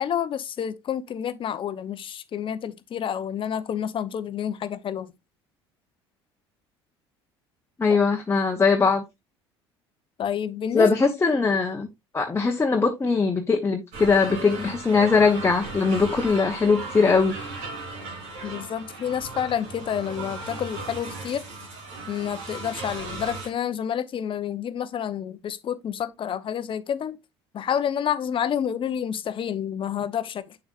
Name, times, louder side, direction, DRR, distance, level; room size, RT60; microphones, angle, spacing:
voice 1, 0.0-5.1 10.2-11.2 18.4-21.5 22.1-27.2 27.5-30.6, left 9 dB, 40° left, 0.9 m, -29 dB
voice 2, 7.8-9.0 10.7-11.9 12.1-17.4, left 4 dB, 20° left, 1.2 m, -21 dB
sound 1, 13.9-23.5, right 3 dB, 65° right, 4.1 m, -36 dB
7.9 x 7.1 x 2.5 m
hypercardioid pair, 65°, 14 cm